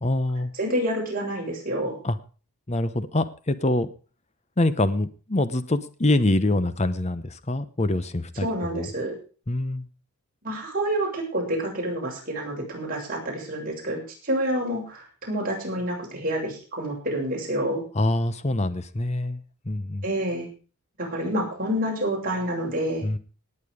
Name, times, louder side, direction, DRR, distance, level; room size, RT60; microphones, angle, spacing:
voice 1, 0.0-0.5 2.0-2.2 2.7-3.9 4.6-8.9 9.5-9.9 17.9-20.1 23.0-23.2, left 1 dB, 30° left, 13 dB, 0.9 m, -25 dB
voice 2, 0.5-2.0 8.4-9.2 10.4-17.8 20.0-20.5 21.0-23.1, right 1 dB, 40° right, -2 dB, 7.2 m, -28 dB
18.5 x 9.1 x 5.0 m, 0.37 s
head